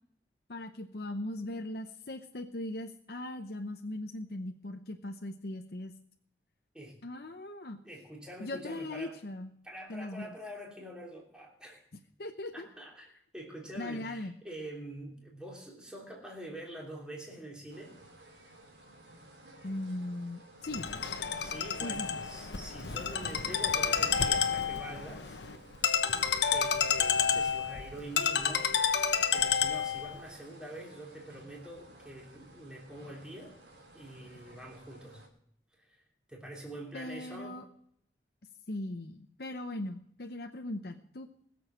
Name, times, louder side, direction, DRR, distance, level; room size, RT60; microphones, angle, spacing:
voice 1, 0.5-5.9 7.0-7.8 8.4-9.5 9.9-10.3 12.2-12.7 13.8-14.4 19.6-20.9 21.8-22.2 36.9-37.7 38.7-41.5, left 1 dB, 60° left, 4 dB, 0.8 m, -39 dB
voice 2, 7.8-9.2 9.6-11.8 12.5-13.1 13.3-18.0 21.3-25.4 26.5-29.0 29.3-33.6 33.9-35.2 35.8-36.0 36.3-37.7, right 1 dB, 5° right, -3 dB, 3.0 m, -45 dB
sound 1, 17.7-35.3, right 1 dB, 80° right, 3.3 m, -55 dB
Ringtone, 20.6-30.2, left 7 dB, 80° left, 1.1 m, -30 dB
20.5 x 7.0 x 6.3 m, 0.70 s
head